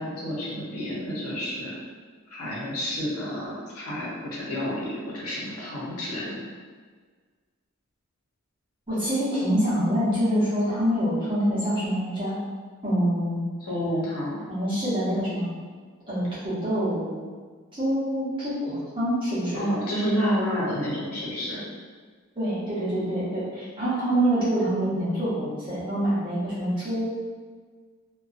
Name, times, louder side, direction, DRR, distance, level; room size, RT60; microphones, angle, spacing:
voice 1, 0.0-1.7 2.3-6.4 13.6-14.4 19.5-21.7, equal, 85° left, -6 dB, 0.8 m, -29 dB
voice 2, 8.9-12.4 12.8-13.4 14.5-15.5 16.1-17.2 17.7-19.6 22.4-27.1, equal, 20° right, -11 dB, 0.9 m, -26 dB
2.6 x 2.3 x 2.5 m, 1.5 s
head